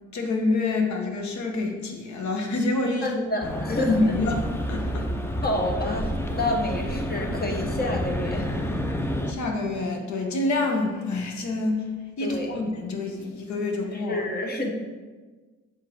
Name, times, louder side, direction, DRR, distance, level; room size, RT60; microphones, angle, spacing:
voice 1, 0.1-3.2 3.7-5.1 9.3-11.8 12.2-14.2, left 2 dB, 70° left, 3 dB, 1.1 m, -27 dB
voice 2, 3.0-3.9 5.4-8.5 12.2-12.6 13.9-14.7, left 1 dB, 30° left, 2 dB, 1.0 m, -29 dB
sound 1, 3.4-9.3, left 1 dB, 10° left, 0.5 m, -29 dB
6.8 x 4.6 x 3.6 m, 1.4 s
cardioid pair, 90°, 30 cm